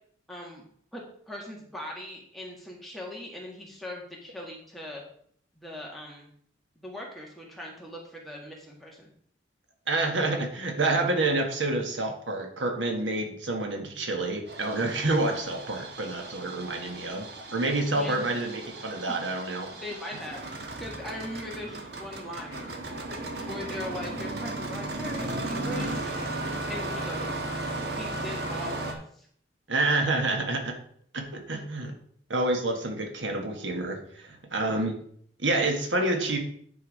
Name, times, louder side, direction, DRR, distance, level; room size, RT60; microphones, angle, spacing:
voice 1, 0.3-0.6 0.9-5.0 5.6-6.3 6.8-9.1 17.9-18.3 19.1-19.2 19.8-20.4 20.8-22.7 23.0-26.2 26.7-27.4 28.0-29.3, left 1 dB, ahead, -3 dB, 1.7 m, -40 dB
voice 2, 9.9-19.7 29.7-30.7 31.1-31.9 32.3-35.0 35.4-36.4, right 2 dB, 80° right, 3 dB, 1.6 m, -28 dB
Engine starting, 14.5-28.9, right 2 dB, 55° right, 1.3 m, -35 dB
9.7 x 4.7 x 4.8 m, 0.62 s
head